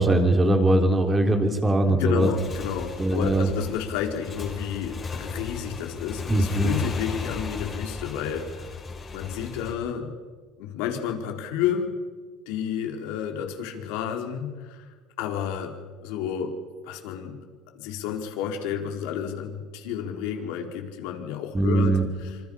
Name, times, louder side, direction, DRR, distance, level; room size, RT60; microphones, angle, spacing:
voice 1, 0.0-2.3 3.0-3.5 6.3-6.7 21.5-22.0, right 1 dB, 15° right, 5 dB, 3.5 m, -21 dB
voice 2, 1.9-8.8 9.1-10.1 10.6-11.9 12.5-15.7 16.0-16.5 16.8-17.4 17.7-22.4, left 8 dB, 80° left, 3 dB, 4.4 m, -31 dB
Motorcycle / Engine, 2.1-9.7, left 4 dB, 25° left, 4.9 m, -35 dB
27.0 x 26.5 x 5.7 m, 1.5 s
cardioid pair, 135°, 0 cm